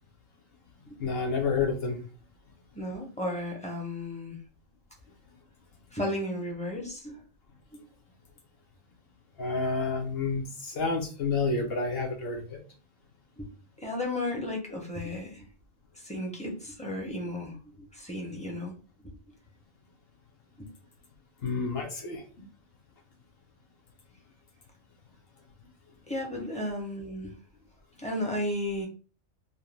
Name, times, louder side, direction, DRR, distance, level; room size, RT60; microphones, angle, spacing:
voice 1, 1.0-2.0 9.4-12.6 21.4-22.5, left 4 dB, 55° left, 1 dB, 0.9 m, -29 dB
voice 2, 2.7-4.4 5.9-7.2 13.4-13.5 13.8-15.4 16.0-18.7 20.6-20.7 26.1-27.3 28.0-28.9, left 1 dB, 10° left, -1 dB, 0.4 m, -34 dB
2.4 x 2.2 x 3.1 m, 0.36 s
omnidirectional pair, 1.3 m